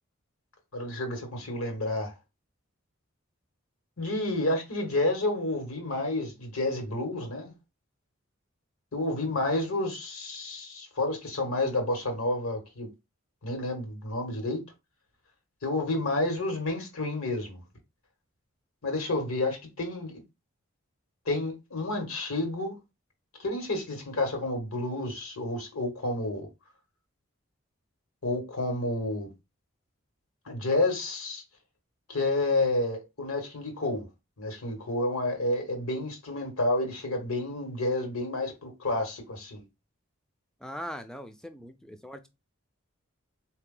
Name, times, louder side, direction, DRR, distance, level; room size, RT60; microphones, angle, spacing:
voice 1, 0.7-2.1 4.0-7.5 8.9-12.9 13.4-14.6 15.6-17.6 18.8-20.2 21.2-22.8 23.4-26.5 28.2-29.3 30.4-31.4 32.1-34.1 34.4-39.6, left 2 dB, 80° left, 1.6 m, -30 dB
voice 2, 40.6-42.3, equal, 5° left, 0.4 m, -40 dB
3.9 x 2.8 x 3.7 m
head